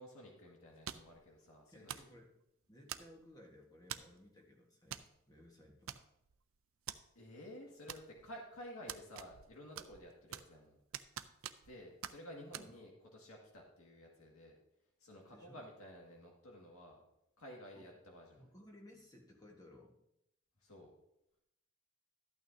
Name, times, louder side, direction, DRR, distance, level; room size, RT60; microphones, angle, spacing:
voice 1, 0.0-1.9 7.2-10.8 11.6-14.6 15.0-17.0 17.4-18.5 20.6-20.9, equal, 80° left, -1 dB, 1.9 m, -53 dB
sound 1, 0.9-1.2 1.9-2.2 2.9-3.3 3.9-4.2 4.9-5.1 5.4-5.5 5.9-6.4 6.9-7.0 7.9-8.4 8.9-9.5 9.8-10.6 10.9-11.8 12.0-12.2 12.5-12.7, right 10 dB, 70° right, 0.5 m, -46 dB
voice 2, 1.7-2.3 2.7-5.9 12.5-12.7 15.3-15.6 17.7-17.9 18.4-19.9, left 1 dB, 15° left, 0 dB, 1.4 m, -59 dB
12.5 x 8.8 x 2.7 m, 0.82 s
head